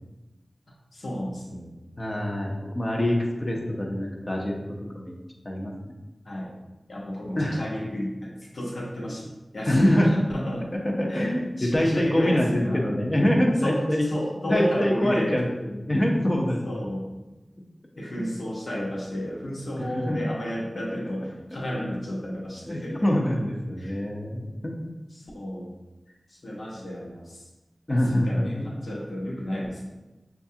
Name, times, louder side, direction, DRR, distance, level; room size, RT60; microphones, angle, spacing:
voice 1, 0.9-1.8 6.2-6.5 6.9-9.3 9.5-10.7 11.1-12.8 13.6-15.4 16.6-17.1 18.0-23.1 23.8-24.0 25.1-25.8 26.3-27.4 27.9-29.8, equal, 70° left, -4 dB, 0.9 m, -32 dB
voice 2, 2.0-4.5 4.9-5.2 5.4-5.7 7.4-7.6 9.7-10.3 10.8-14.1 14.5-16.6 17.9-18.3 19.8-20.2 21.8-22.0 22.7-24.9 27.9-28.7, left 1 dB, 35° left, -1 dB, 0.7 m, -25 dB
5.8 x 2.4 x 2.7 m, 1.1 s
wide cardioid pair, 50°, 0 cm